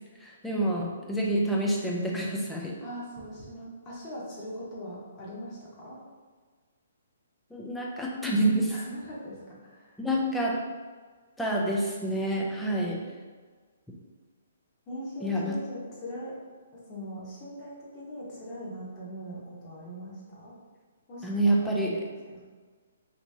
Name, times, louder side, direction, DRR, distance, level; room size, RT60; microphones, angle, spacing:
voice 1, 0.2-2.8 7.5-8.7 10.0-10.6 11.4-13.0 15.2-15.6 21.2-22.0, right 1 dB, 5° left, -3 dB, 0.4 m, -27 dB
voice 2, 2.8-6.0 8.7-10.0 14.9-16.3 16.7-20.5 21.1-22.4, equal, 25° left, -6 dB, 1.0 m, -41 dB
2.9 x 2.8 x 3.4 m, 1.5 s
hypercardioid pair, 160°, 0 cm